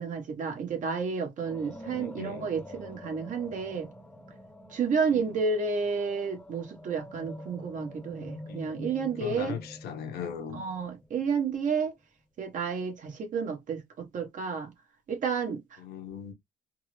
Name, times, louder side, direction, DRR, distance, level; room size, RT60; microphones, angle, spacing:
voice 1, 0.0-3.9 4.7-9.6 10.5-11.9 12.4-14.7 15.1-15.8, right 5 dB, 50° right, 1.2 m, -31 dB
sound 1, 1.4-11.6, left 1 dB, 5° left, 0.9 m, -46 dB
voice 2, 1.9-2.5 5.1-5.3 8.5-8.6 9.2-10.7 15.8-16.3, left 7 dB, 70° left, 1.1 m, -38 dB
3.7 x 2.0 x 3.1 m
cardioid pair, 110°, 17 cm